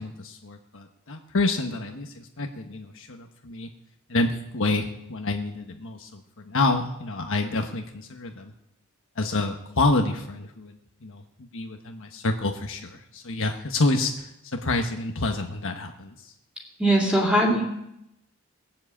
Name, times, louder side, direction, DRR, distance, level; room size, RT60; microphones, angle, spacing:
voice 1, 0.0-3.7 4.1-8.5 9.2-10.8 11.0-11.2 11.5-16.3, left 2 dB, 65° left, 4 dB, 1.3 m, -28 dB
voice 2, 16.8-17.6, right 1 dB, 5° right, -2 dB, 3.2 m, -20 dB
20.5 x 7.6 x 8.6 m, 0.84 s
head